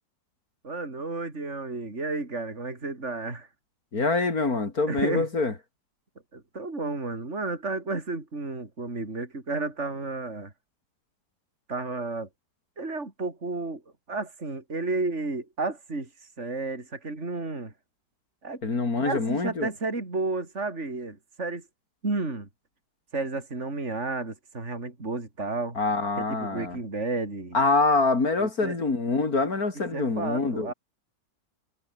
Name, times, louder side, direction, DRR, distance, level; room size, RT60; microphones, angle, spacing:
voice 1, 0.6-3.5 4.9-5.3 6.3-10.5 11.7-12.3 12.8-13.8 14.1-17.7 18.4-18.6 19.0-21.6 22.0-22.5 23.1-25.8 26.2-27.6 28.4-28.8 29.9-30.7, right 3 dB, 40° right, 4.5 m, -32 dB
voice 2, 3.9-5.5 18.6-19.7 25.8-26.8 27.5-30.7, left 3 dB, 55° left, 3.5 m, -25 dB
omnidirectional pair, 1.9 m